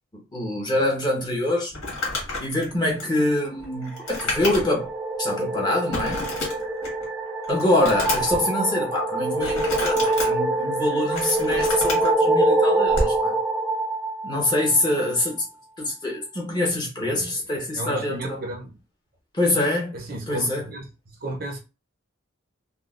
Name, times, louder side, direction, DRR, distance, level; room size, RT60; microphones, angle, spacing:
voice 1, 0.3-1.7 2.4-4.9 5.2-6.2 7.5-13.3 14.2-15.4 15.8-18.4 19.3-20.0 20.3-20.6, left 1 dB, 20° left, 0.9 m, -25 dB
Crumpling crinkling, 1.7-4.9 5.3-5.4 5.9-7.0 7.4-8.4 9.4-10.3 10.9-12.1 12.9-13.2, left 2 dB, 85° left, 1.5 m, -30 dB
sound 1, 3.7-15.1, right 2 dB, ahead, 0.3 m, -25 dB
voice 2, 17.0-17.4 17.7-18.8 19.9-20.9 21.2-21.6, right 1 dB, 45° right, 0.6 m, -34 dB
3.7 x 2.2 x 2.4 m
head